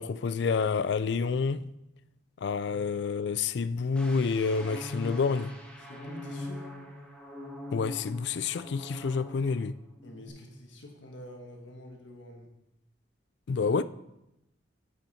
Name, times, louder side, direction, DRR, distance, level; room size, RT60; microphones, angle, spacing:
voice 1, 0.0-1.7 2.4-5.5 7.7-9.7 13.5-13.8, left 5 dB, 65° left, 0.4 m, -28 dB
sound 1, 4.0-9.7 10.0-10.3, left 1 dB, 5° left, 1.4 m, -42 dB
voice 2, 5.8-6.7 10.0-12.5, left 1 dB, 80° left, 1.6 m, -47 dB
9.3 x 7.2 x 4.2 m
head